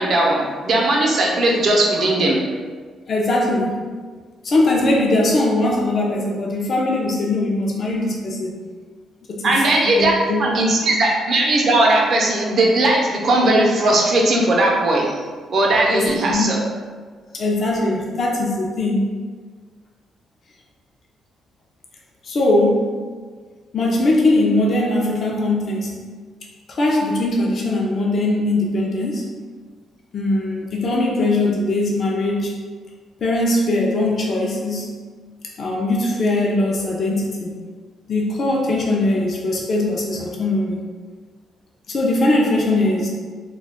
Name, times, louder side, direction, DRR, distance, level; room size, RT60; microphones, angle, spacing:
voice 1, 0.0-2.4 9.4-15.2 15.5-16.6, right 2 dB, 55° right, -1 dB, 0.6 m, -18 dB
voice 2, 3.1-3.8 4.4-8.5 9.3-10.6 15.9-16.4 17.3-19.1 22.2-23.0 23.7-26.0 26.7-29.3 30.1-32.5 33.2-34.9 35.6-37.5 38.1-40.8 41.9-43.1, left 2 dB, 50° left, -2 dB, 0.4 m, -20 dB
2.3 x 2.2 x 3.4 m, 1.5 s
cardioid pair, 90°, 0 cm